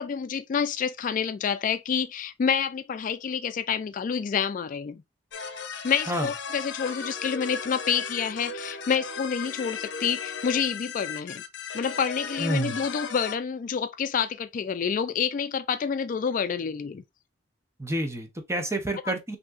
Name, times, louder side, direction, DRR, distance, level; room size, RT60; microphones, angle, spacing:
voice 1, 0.0-5.0 5.8-11.4 11.7-17.0 19.0-19.1, left 7 dB, 45° left, 0.3 m, -28 dB
sound 1, 5.3-13.3, left 5 dB, 70° left, 0.7 m, -36 dB
voice 2, 12.4-12.8 17.8-19.4, right 1 dB, 15° right, 0.7 m, -29 dB
6.0 x 2.8 x 2.4 m
head